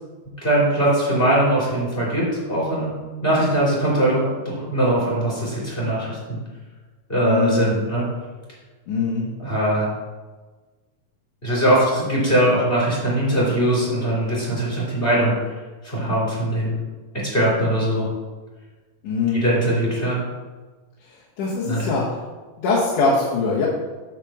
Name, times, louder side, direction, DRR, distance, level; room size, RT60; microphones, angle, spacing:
voice 1, 0.4-2.9 3.2-6.4 7.1-8.0 9.4-9.9 11.4-15.3 15.8-16.8 17.3-18.1 19.3-20.2 21.7-21.9, right 1 dB, 15° left, -6 dB, 3.1 m, -21 dB
voice 2, 7.2-7.6 8.9-9.3 19.0-19.4 21.4-22.0 22.6-23.7, left 4 dB, 85° left, -6 dB, 2.9 m, -22 dB
8.4 x 4.6 x 6.6 m, 1.3 s
omnidirectional pair, 3.6 m